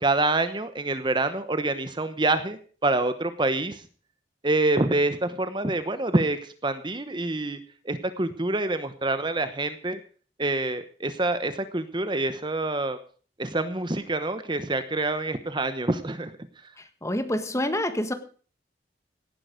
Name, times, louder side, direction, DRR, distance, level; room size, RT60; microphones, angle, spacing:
voice 1, 0.0-3.8 4.4-7.6 7.8-10.0 10.4-13.0 13.4-16.3, right 2 dB, 25° right, 11 dB, 1.0 m, -26 dB
voice 2, 16.8-18.1, left 1 dB, 15° left, 9 dB, 1.6 m, -27 dB
17.0 x 11.0 x 5.1 m, 0.41 s
head